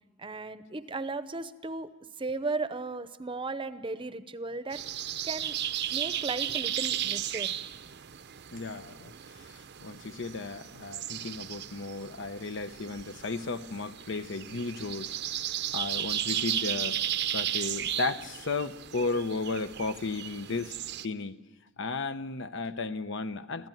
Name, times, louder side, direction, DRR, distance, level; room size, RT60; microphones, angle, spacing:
voice 1, 0.2-1.9 2.2-4.8 5.2-5.6 5.9-7.5, right 3 dB, 25° right, 13 dB, 0.8 m, -35 dB
sound 1, 4.7-21.0, right 11 dB, 55° right, 0.7 m, -35 dB
voice 2, 8.5-15.1 15.7-17.0 17.3-20.8 21.0-21.4 21.8-23.7, left 3 dB, 65° left, 11 dB, 0.9 m, -34 dB
28.0 x 15.0 x 9.2 m, 1.3 s
head